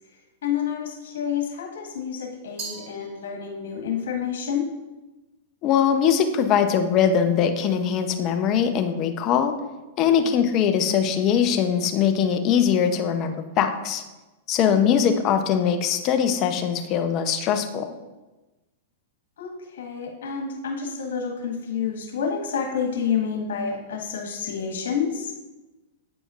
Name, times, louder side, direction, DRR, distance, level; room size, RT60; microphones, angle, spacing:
voice 1, 0.4-4.7 10.0-10.4 14.6-14.9 19.4-25.3, left 7 dB, 75° left, 1 dB, 1.6 m, -29 dB
Glass, 2.6-3.8, right 4 dB, 40° right, 1.9 m, -39 dB
voice 2, 5.6-9.5 10.0-14.0 14.5-17.9, left 8 dB, 40° left, 7 dB, 0.7 m, -21 dB
9.2 x 5.0 x 2.5 m, 1.1 s
hypercardioid pair, 115°, 0 cm